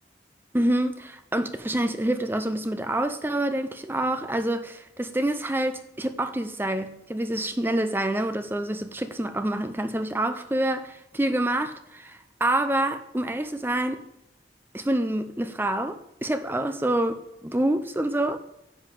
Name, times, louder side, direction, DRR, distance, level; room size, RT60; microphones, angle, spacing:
voice 1, 0.5-14.0 14.7-18.4, right 1 dB, 10° right, 0.5 m, -27 dB
10.5 x 7.1 x 7.5 m
head